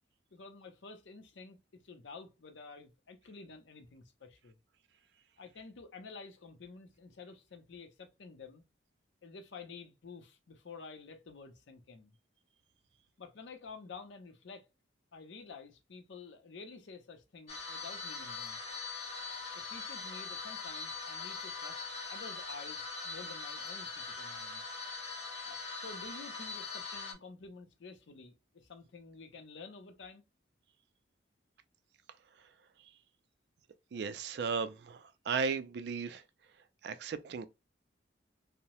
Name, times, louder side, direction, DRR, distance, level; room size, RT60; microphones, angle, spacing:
voice 1, 0.3-4.6 5.4-8.6 9.2-12.1 13.2-14.7 15.1-18.6 19.5-24.6 25.5-30.2, left 4 dB, 75° left, 0.5 m, -50 dB
sound 1, 17.5-27.1, left 4 dB, 35° left, 0.8 m, -42 dB
voice 2, 33.9-36.2 36.8-37.5, right 5 dB, 60° right, 0.3 m, -36 dB
2.7 x 2.0 x 2.9 m
head